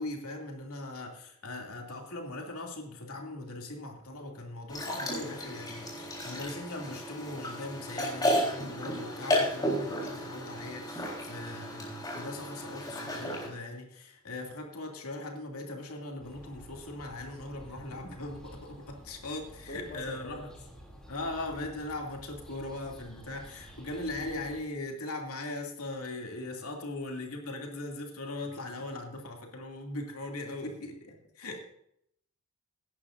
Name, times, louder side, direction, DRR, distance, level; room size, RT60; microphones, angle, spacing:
voice 1, 0.0-20.5 21.1-31.6, left 2 dB, 85° left, 1 dB, 2.7 m, -40 dB
sound 1, 4.7-13.5, equal, 20° left, 3.9 m, -33 dB
voice 2, 11.3-12.0 17.7-18.0 19.7-20.5, equal, 50° left, 0 dB, 2.3 m, -46 dB
sound 2, 16.2-24.6, equal, 5° left, 2.8 m, -51 dB
18.0 x 11.0 x 2.6 m, 0.72 s
head